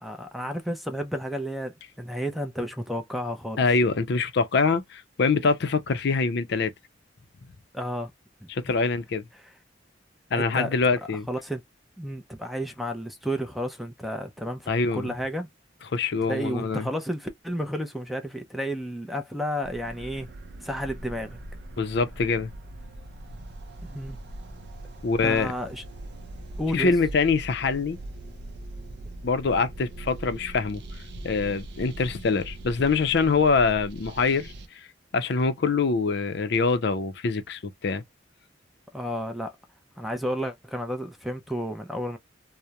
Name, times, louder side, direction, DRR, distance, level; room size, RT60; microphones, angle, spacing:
voice 1, 0.0-3.6 7.7-8.1 8.4-8.5 10.3-10.8 11.3-11.6 12.0-15.5 16.3-20.3 20.6-21.4 23.8-24.2 25.2-25.8 26.6-26.9 38.9-39.6 40.0-42.2, equal, ahead, 0.4 m, -32 dB
voice 2, 3.6-6.7 8.5-9.2 10.3-11.3 14.7-15.1 15.9-16.9 21.8-22.5 25.0-25.5 26.7-28.0 29.2-30.8 31.2-34.5 35.1-38.0, left 4 dB, 60° left, 0.5 m, -24 dB
sound 1, 19.6-34.7, right 1 dB, 60° right, 0.5 m, -41 dB
2.8 x 2.0 x 2.2 m
head